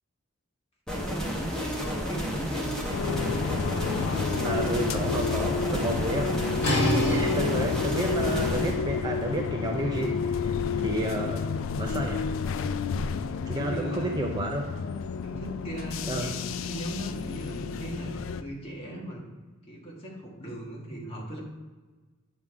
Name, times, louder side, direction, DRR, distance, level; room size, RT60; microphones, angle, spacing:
sound 1, 0.9-8.7, equal, 5° left, 1.1 m, -31 dB
voice 1, 1.6-2.8 11.0-11.4 13.5-14.2 15.2-16.4 16.7-19.2 19.6-21.4, right 1 dB, 25° left, -3 dB, 1.5 m, -38 dB
sound 2, 2.9-18.4, left 5 dB, 65° left, 0.3 m, -30 dB
voice 2, 4.4-6.5 6.9-11.4 11.8-12.3 13.5-14.6 16.1-16.3, right 1 dB, 20° right, 1 dB, 0.4 m, -31 dB
sound 3, 6.6-12.2, equal, 50° left, 1.8 m, -32 dB
8.5 x 3.8 x 4.5 m, 1.3 s
head